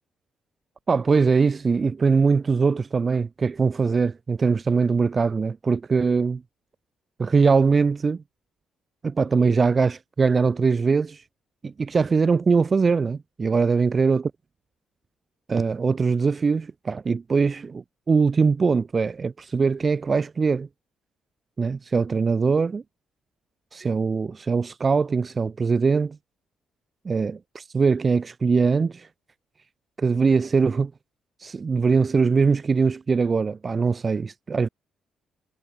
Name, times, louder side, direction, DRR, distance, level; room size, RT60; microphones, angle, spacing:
voice 1, 0.9-6.4 7.2-8.2 9.0-11.2 11.6-14.3 15.5-20.7 21.6-22.8 23.7-26.2 27.0-29.1 30.0-30.9 31.4-34.7, right 5 dB, 35° right, 1.1 m, -22 dB
cardioid pair, 90°, 0 cm